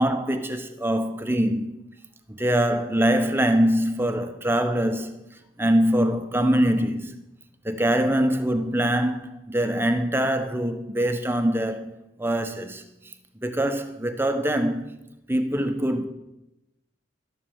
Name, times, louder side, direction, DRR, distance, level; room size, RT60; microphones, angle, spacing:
voice 1, 0.0-1.8 2.3-5.2 5.6-7.2 7.6-13.1 13.4-14.9 15.3-16.1, equal, 10° right, 1.1 m, -23 dB
13.0 x 11.0 x 7.2 m
head